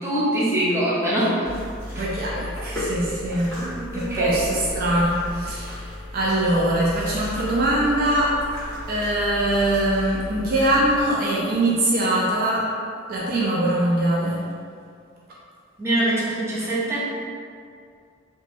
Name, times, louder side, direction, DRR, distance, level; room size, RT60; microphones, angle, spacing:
voice 1, 0.0-1.5 2.0-2.1 3.9-4.4 15.8-17.1, right 1 dB, 15° right, -8 dB, 0.6 m, -23 dB
sound 1, 1.4-11.1, left 1 dB, 15° left, 1.5 m, -34 dB
voice 2, 1.9-8.4 8.9-12.8 13.1-14.4, right 1 dB, 50° right, -5 dB, 0.4 m, -22 dB
2.9 x 2.2 x 2.9 m, 2.2 s
head